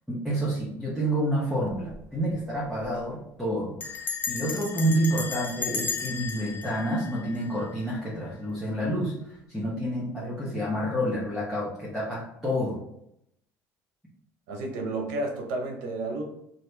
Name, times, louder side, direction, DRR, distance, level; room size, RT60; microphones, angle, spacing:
voice 1, 0.1-12.8, equal, ahead, -7 dB, 0.9 m, -29 dB
Bell, 1.7-2.0 2.3-2.4 2.6-3.0 3.8-7.9, left 5 dB, 30° left, 0.5 m, -34 dB
voice 2, 14.5-16.2, right 2 dB, 85° right, 2 dB, 0.8 m, -31 dB
2.9 x 2.5 x 3.3 m, 0.77 s
cardioid pair, 110°, 6 cm